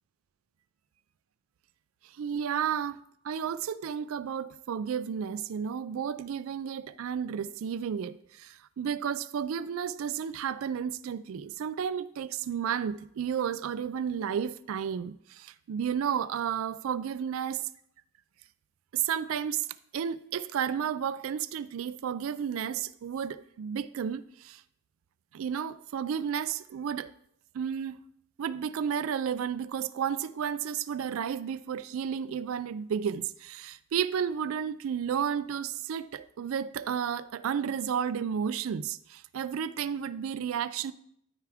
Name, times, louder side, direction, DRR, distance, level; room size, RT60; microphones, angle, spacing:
voice 1, 2.2-17.7 18.9-19.7 19.9-24.6 25.3-27.1 27.5-28.0 28.4-40.9, right 8 dB, 75° right, 0.3 m, -32 dB
13.0 x 4.6 x 3.5 m
head